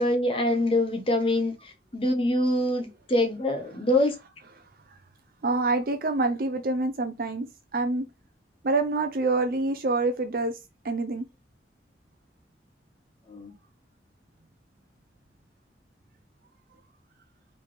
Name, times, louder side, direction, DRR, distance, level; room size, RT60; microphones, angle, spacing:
voice 1, 0.0-4.1 13.3-13.5, left 1 dB, 30° left, 0.8 m, -25 dB
voice 2, 5.4-7.5 7.7-8.1 8.6-10.6 10.8-11.2, right 3 dB, 50° right, 0.5 m, -26 dB
4.0 x 3.3 x 3.4 m
head